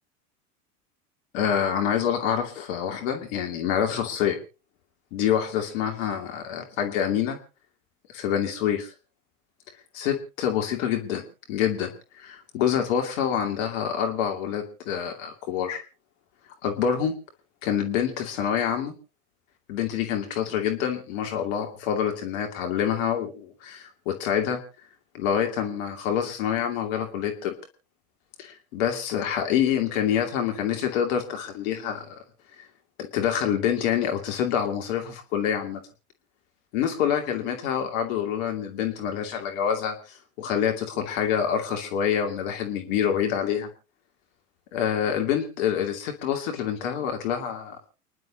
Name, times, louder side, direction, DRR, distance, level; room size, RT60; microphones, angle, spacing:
voice 1, 1.3-4.4 5.1-7.4 8.1-8.9 9.9-11.2 11.5-11.9 12.2-15.8 16.6-17.1 17.6-18.9 19.7-24.6 25.1-27.5 28.4-32.1 32.6-32.7 33.0-35.8 36.7-43.7 44.7-47.8, left 8 dB, 55° left, 4 dB, 2.6 m, -26 dB
29.5 x 11.0 x 2.9 m, 0.32 s
figure-of-eight pair, 85°, 46 cm